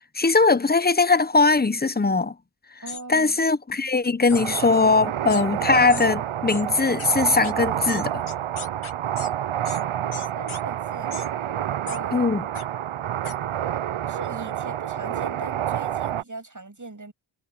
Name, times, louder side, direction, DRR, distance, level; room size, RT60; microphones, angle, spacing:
voice 1, 0.2-2.3 3.1-8.2 12.1-12.4, left 4 dB, 20° left, 0.8 m, -20 dB
voice 2, 2.8-3.4 10.3-11.2 11.8-12.2 14.1-17.1, right 3 dB, 40° right, 7.5 m, -39 dB
sound 1, 2.9-3.0 4.3-4.4 5.3-5.4 5.9-6.1 6.5-6.6 7.0-7.1 7.4-7.5 7.9-9.3 9.6-9.8 10.1-10.6 11.1-11.3 11.9-12.0 12.5-12.6 13.2-13.3, left 6 dB, 80° left, 1.8 m, -37 dB
sound 2, 4.3-16.2, right 11 dB, 75° right, 0.7 m, -28 dB
cardioid pair, 50°, 49 cm